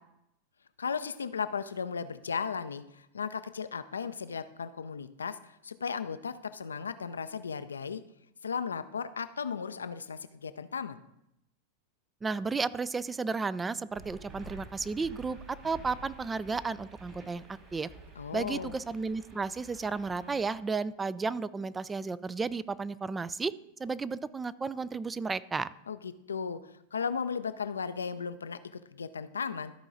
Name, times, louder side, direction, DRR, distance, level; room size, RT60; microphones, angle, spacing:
voice 1, 0.8-8.0 8.4-11.0 18.2-18.7 25.9-29.7, left 6 dB, 80° left, 12 dB, 0.5 m, -36 dB
voice 2, 12.2-15.4 15.6-17.9 18.3-23.5 23.8-25.7, right 4 dB, 15° right, 18 dB, 0.4 m, -33 dB
sound 1, 13.9-20.6, right 2 dB, 40° right, 3.1 m, -50 dB
13.0 x 4.8 x 3.9 m, 0.83 s
figure-of-eight pair, 90°, 0 cm